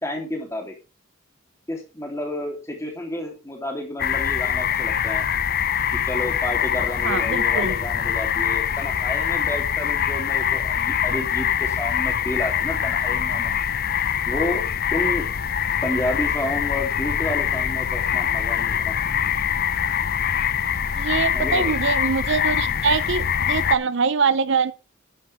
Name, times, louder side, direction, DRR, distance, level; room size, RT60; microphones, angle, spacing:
voice 1, 0.0-0.7 1.7-5.2 6.0-13.5 14.3-14.6 14.9-15.2 15.8-19.0 21.3-21.7, left 1 dB, 15° left, 3.2 m, -30 dB
sound 1, 4.0-23.8, left 8 dB, 45° left, 0.5 m, -24 dB
voice 2, 7.0-7.7 21.0-24.7, right 5 dB, 55° right, 0.5 m, -23 dB
11.5 x 9.9 x 3.5 m
head